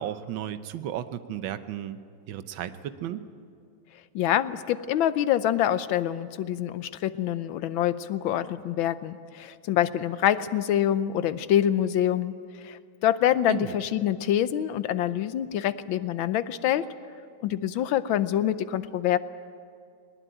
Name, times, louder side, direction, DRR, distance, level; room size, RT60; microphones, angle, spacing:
voice 1, 0.0-2.0 2.3-3.2 13.5-13.7, right 11 dB, 80° right, 11 dB, 1.6 m, -34 dB
voice 2, 4.1-16.9 17.4-19.2, left 11 dB, 85° left, 13 dB, 1.5 m, -26 dB
20.5 x 20.5 x 9.0 m, 2.3 s
omnidirectional pair, 2.1 m